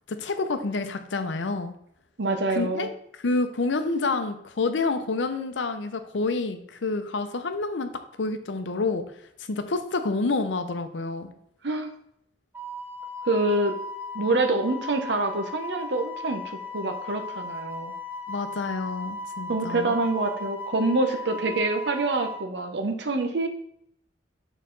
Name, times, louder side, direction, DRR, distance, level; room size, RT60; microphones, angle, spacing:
voice 1, 0.1-1.7 2.5-7.9 8.2-9.0 9.5-11.3 18.3-20.0 21.5-21.6, left 3 dB, 85° left, 8 dB, 0.7 m, -28 dB
voice 2, 2.2-2.9 11.6-11.9 13.2-13.7 14.1-17.9 19.5-23.5, right 2 dB, 70° right, 6 dB, 0.8 m, -26 dB
Wind instrument woodwind instrument, 12.5-22.4, left 2 dB, 10° right, 0.4 m, -37 dB
6.6 x 4.0 x 3.9 m, 0.72 s
head